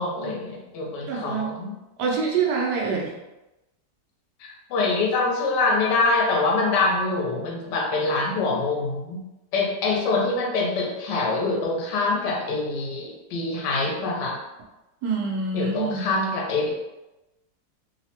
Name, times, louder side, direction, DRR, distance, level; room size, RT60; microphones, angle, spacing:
voice 1, 0.0-1.7 4.4-9.2 9.5-14.4 15.5-16.7, left 3 dB, 90° left, 0 dB, 1.2 m, -25 dB
voice 2, 1.1-1.6 2.0-3.1 15.0-16.1, right 5 dB, 90° right, -1 dB, 1.3 m, -26 dB
3.3 x 2.1 x 2.8 m, 0.99 s
omnidirectional pair, 1.8 m